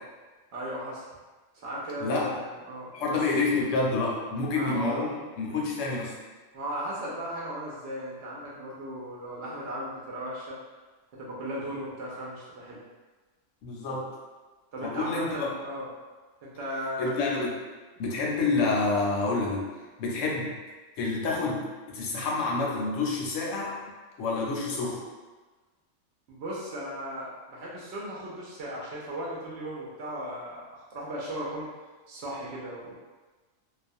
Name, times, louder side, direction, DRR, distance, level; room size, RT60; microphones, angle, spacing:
voice 1, 0.5-1.0 1.5-3.2 4.5-5.0 5.5-5.6 6.5-10.6 11.1-12.8 14.7-15.9 16.4-17.1 18.2-18.3 26.3-31.7 32.1-32.9, equal, 65° right, -5 dB, 0.7 m, -36 dB
voice 2, 2.9-5.1 5.4-6.1 13.6-14.1 14.8-15.5 17.0-17.6 18.0-19.7 20.0-20.5 21.0-23.8 24.2-25.0, left 3 dB, 75° left, -2 dB, 0.9 m, -28 dB
2.3 x 2.1 x 2.6 m, 1.3 s
omnidirectional pair, 1.4 m